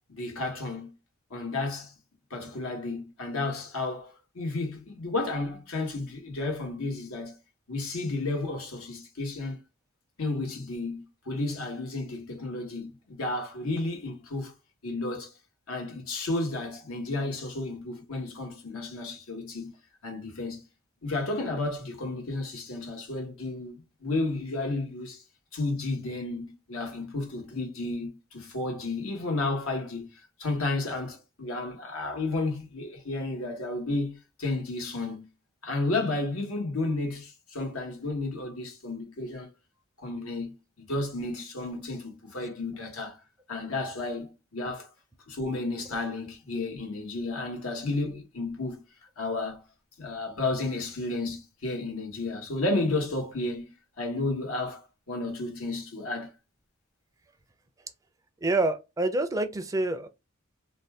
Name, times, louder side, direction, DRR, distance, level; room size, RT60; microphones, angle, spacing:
voice 1, 0.1-0.9 1.3-1.9 2.3-7.4 7.7-9.6 10.2-14.5 14.8-15.3 15.7-19.7 20.0-20.6 21.0-25.2 25.5-35.3 35.6-39.5 40.0-40.5 40.9-43.2 43.5-44.9 45.3-48.8 49.2-49.6 50.0-56.3, left 2 dB, 80° left, 1.2 m, -32 dB
voice 2, 58.4-60.1, right 2 dB, 15° right, 0.4 m, -27 dB
2.6 x 2.2 x 3.3 m
head